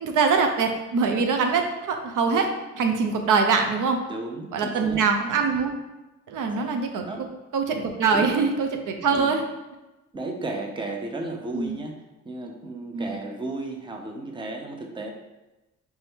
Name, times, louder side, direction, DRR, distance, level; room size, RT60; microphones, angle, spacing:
voice 1, 0.0-2.5 2.7-4.0 4.5-5.8 6.3-7.1 7.5-9.4 11.5-11.8 12.9-13.2, right 5 dB, 85° right, 5 dB, 0.6 m, -23 dB
voice 2, 4.1-5.0 6.5-6.7 7.1-7.3 8.1-8.4 9.0-9.3 10.1-11.9 12.3-15.1, right 2 dB, 15° right, 2 dB, 0.5 m, -34 dB
4.2 x 3.4 x 3.5 m, 1.0 s
cardioid pair, 125°, 30 cm